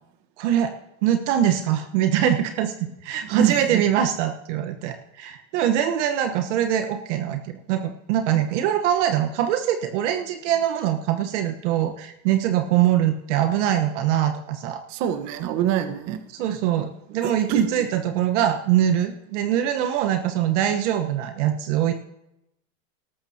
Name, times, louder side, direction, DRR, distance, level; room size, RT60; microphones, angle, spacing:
voice 1, 0.4-0.7 1.0-14.8 16.3-21.9, right 10 dB, 60° right, 6 dB, 1.2 m, -23 dB
voice 2, 3.3-3.8 14.9-16.2 17.2-17.7, right 9 dB, 45° right, 8 dB, 1.4 m, -24 dB
19.5 x 13.0 x 2.9 m, 0.85 s
supercardioid pair, 140°, 40 cm